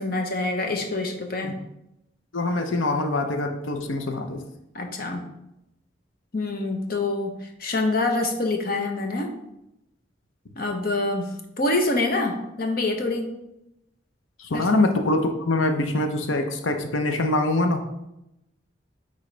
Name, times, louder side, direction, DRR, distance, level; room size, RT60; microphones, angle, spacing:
voice 1, 0.0-1.6 4.7-5.3 6.3-9.3 10.6-11.3 11.6-13.3 14.5-14.7, left 2 dB, 50° left, 3 dB, 1.0 m, -26 dB
voice 2, 2.3-4.4 14.4-17.8, left 2 dB, 80° left, 5 dB, 0.7 m, -24 dB
8.9 x 4.0 x 3.3 m, 0.87 s
head